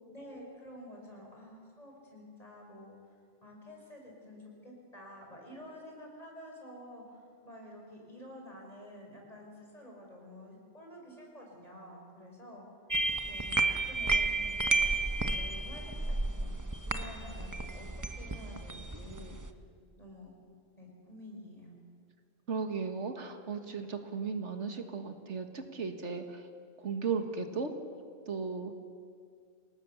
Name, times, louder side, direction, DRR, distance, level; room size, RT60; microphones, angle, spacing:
voice 1, 0.1-3.0 3.4-12.7 13.3-16.5 16.8-19.4 20.0-20.4 20.8-21.7, left 1 dB, 30° left, -1 dB, 5.8 m, -50 dB
sound 1, 12.9-19.5, right 3 dB, 15° right, 1.0 m, -32 dB
voice 2, 22.5-26.4 26.8-27.7 28.3-28.7, right 5 dB, 75° right, 6 dB, 1.9 m, -36 dB
28.0 x 18.5 x 7.1 m, 2.1 s
omnidirectional pair, 1.2 m